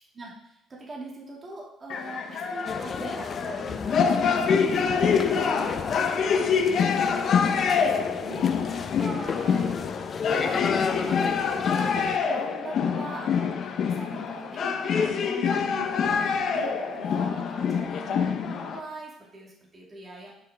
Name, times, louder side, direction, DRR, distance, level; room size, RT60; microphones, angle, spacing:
voice 1, 0.1-9.7 10.3-20.3, right 1 dB, 30° right, -4 dB, 2.6 m, -42 dB
sound 1, 1.9-18.8, left 6 dB, 60° left, 1.0 m, -26 dB
sound 2, 2.6-12.2, left 5 dB, 40° left, 0.7 m, -33 dB
12.0 x 5.8 x 3.6 m, 0.79 s
cardioid pair, 90°, 0 cm